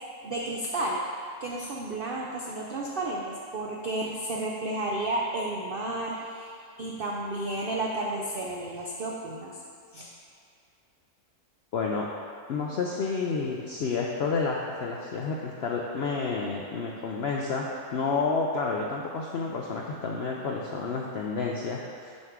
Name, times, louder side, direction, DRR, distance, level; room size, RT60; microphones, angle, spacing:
voice 1, 0.2-1.0 1.4-9.6 9.9-10.1, right 2 dB, 85° right, -2 dB, 0.4 m, -32 dB
voice 2, 11.7-12.1 12.5-22.1, left 4 dB, 80° left, -1 dB, 0.5 m, -30 dB
6.5 x 5.9 x 3.6 m, 2.3 s
omnidirectional pair, 1.7 m